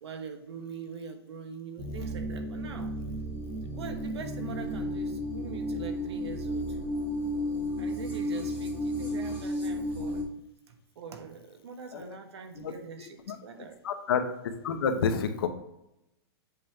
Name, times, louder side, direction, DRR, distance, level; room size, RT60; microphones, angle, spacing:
voice 1, 0.0-2.9 3.6-6.8 7.8-10.3 10.7-13.8, right 6 dB, 80° right, 6 dB, 1.2 m, -43 dB
sound 1, 1.8-10.2, equal, 15° right, 1.1 m, -33 dB
voice 2, 13.0-13.4 13.8-14.2 14.6-15.5, left 6 dB, 60° left, 7 dB, 0.9 m, -29 dB
7.5 x 3.7 x 4.4 m, 0.82 s
supercardioid pair, 180°, 14 cm